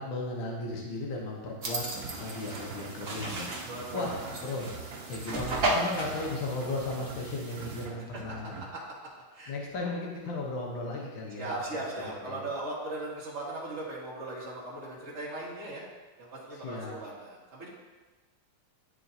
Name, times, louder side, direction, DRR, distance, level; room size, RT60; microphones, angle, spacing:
voice 1, 0.0-1.9 2.2-4.7 5.1-8.7 9.5-11.5 12.2-12.4 16.6-17.0, left 2 dB, 70° left, -2 dB, 1.7 m, -36 dB
sound 1, 1.6-8.7, right 4 dB, 65° right, 1.7 m, -45 dB
sound 2, 1.6-7.8, right 2 dB, 85° right, 0.5 m, -35 dB
voice 2, 3.7-4.4 6.1-6.3 8.7-8.8 9.3-9.5 11.4-15.8 16.2-17.7, right 2 dB, 35° right, -7 dB, 1.7 m, -38 dB
11.0 x 3.8 x 2.7 m, 1.3 s
omnidirectional pair, 2.4 m